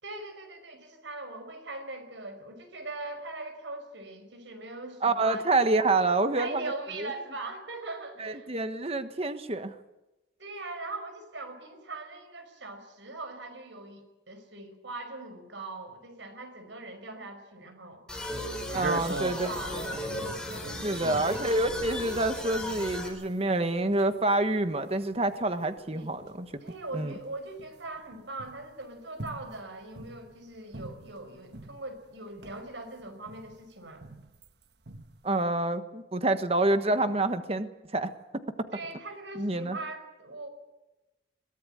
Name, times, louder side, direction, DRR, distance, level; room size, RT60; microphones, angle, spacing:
voice 1, 0.0-5.4 6.4-8.8 10.4-18.0 18.7-19.9 20.6-21.1 25.9-26.2 26.6-34.0 38.7-40.5, right 2 dB, 80° right, 7 dB, 5.3 m, -41 dB
voice 2, 5.0-6.7 7.0-7.1 8.2-9.7 18.7-19.8 20.8-26.6 26.9-27.1 35.2-38.4 39.3-39.8, right 2 dB, 30° right, 9 dB, 1.3 m, -27 dB
sound 1, 18.1-23.1, left 1 dB, 5° left, 4.4 m, -36 dB
sound 2, 18.7-31.9 32.3-34.5 34.8-35.3, right 2 dB, 60° right, 1.4 m, -42 dB
22.5 x 17.5 x 8.9 m, 1.0 s
head